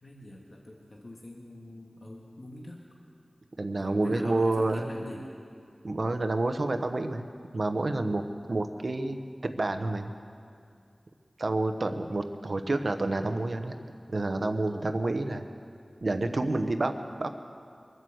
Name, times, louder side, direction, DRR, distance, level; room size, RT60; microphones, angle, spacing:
voice 1, 0.0-2.8 3.7-5.3, left 1 dB, 60° left, -1 dB, 1.7 m, -43 dB
voice 2, 3.6-4.9 5.8-7.2 7.5-8.2 8.5-9.2 9.4-10.1 11.4-13.7 14.1-15.4 16.0-16.9 17.2-17.3, right 2 dB, 65° right, 6 dB, 0.9 m, -28 dB
22.5 x 7.8 x 7.8 m, 2.3 s
wide cardioid pair, 65°, 0 cm